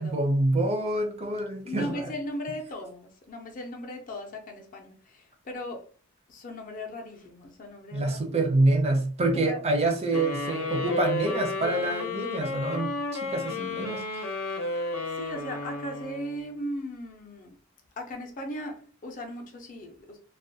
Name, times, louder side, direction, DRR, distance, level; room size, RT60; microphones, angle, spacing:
voice 1, 0.0-2.1 7.9-14.8, right 2 dB, 30° right, 0.5 m, -27 dB
voice 2, 1.6-5.8 6.3-8.3 9.3-9.6 15.2-17.5 18.0-20.2, left 1 dB, 40° left, 0.5 m, -37 dB
sound 1, 10.1-16.5, left 2 dB, 80° left, 0.7 m, -32 dB
2.3 x 2.1 x 2.7 m
head